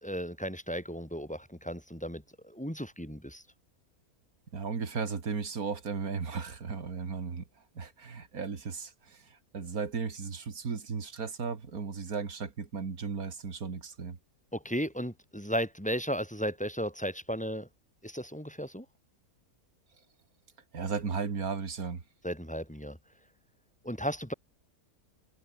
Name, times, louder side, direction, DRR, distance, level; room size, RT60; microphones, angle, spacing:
voice 1, 0.0-3.4 14.5-17.7 18.0-18.8 22.2-23.0 23.8-24.3, equal, 5° left, 3.2 m, -35 dB
voice 2, 4.5-7.4 7.8-9.2 9.5-14.2 20.7-22.0, right 5 dB, 75° right, 2.7 m, -35 dB
omnidirectional pair, 1.5 m